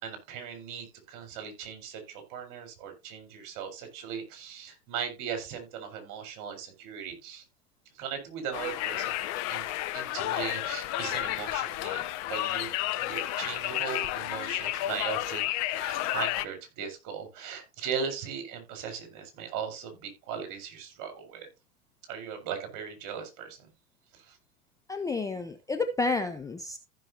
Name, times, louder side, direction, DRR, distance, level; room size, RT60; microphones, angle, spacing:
voice 1, 0.0-7.4 8.0-9.2 9.5-9.7 9.9-12.0 12.3-12.7 13.0-21.5 22.1-23.6 24.2-24.4, right 7 dB, 45° right, 6 dB, 4.7 m, -38 dB
Conversation, 8.5-16.5, left 15 dB, 35° left, 0.8 m, -31 dB
voice 2, 24.9-26.8, left 3 dB, 10° left, 6 dB, 0.6 m, -30 dB
15.0 x 6.4 x 2.8 m, 0.26 s
hypercardioid pair, 115°, 45 cm